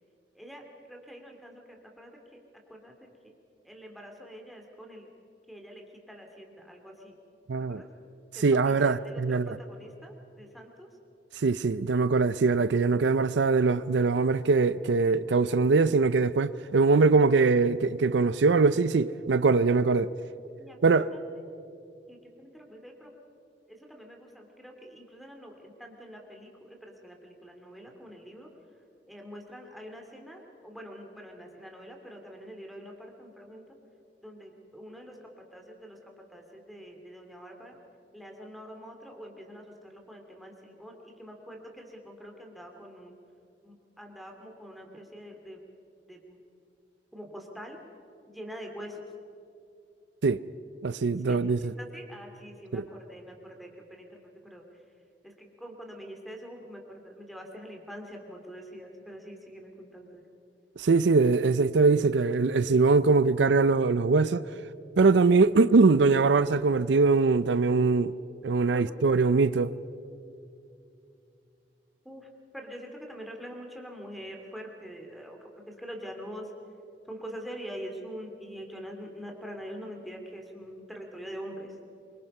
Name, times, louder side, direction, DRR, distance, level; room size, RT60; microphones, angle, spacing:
voice 1, 0.3-2.4 2.7-3.3 3.6-5.1 5.5-7.2 7.7-7.9 8.3-10.9 20.6-21.5 22.1-23.1 23.7-28.5 28.8-33.8 34.2-37.8 38.1-43.1 43.6-45.6 46.1-46.4 47.1-47.8 48.3-49.0 51.3-54.8 55.2-60.3 68.7-68.9 72.0-76.5 77.0-81.8, equal, ahead, 2.8 m, -45 dB
voice 2, 7.5-7.8 8.4-9.6 11.4-20.1 20.8-21.1 50.2-50.4 50.8-51.6 52.7-52.8 60.8-64.4 65.0-68.1 68.4-69.7, right 4 dB, 80° right, 0.5 m, -22 dB
26.0 x 24.5 x 5.5 m
head